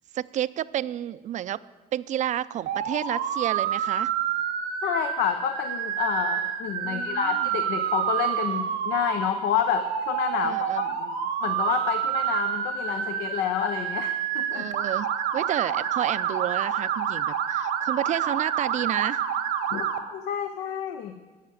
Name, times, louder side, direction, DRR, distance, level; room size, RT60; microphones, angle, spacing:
voice 1, 0.1-1.6 1.9-4.1 6.8-7.5 10.4-11.2 14.5-15.1 15.3-19.2, right 11 dB, 45° right, 17 dB, 0.4 m, -30 dB
Motor vehicle (road) / Siren, 2.7-20.0, right 8 dB, 85° right, 1.1 m, -28 dB
voice 2, 4.8-11.0 11.4-14.7 19.7-21.1, left 9 dB, 85° left, 8 dB, 0.7 m, -29 dB
11.5 x 6.7 x 9.1 m, 1.3 s
cardioid pair, 110°, 17 cm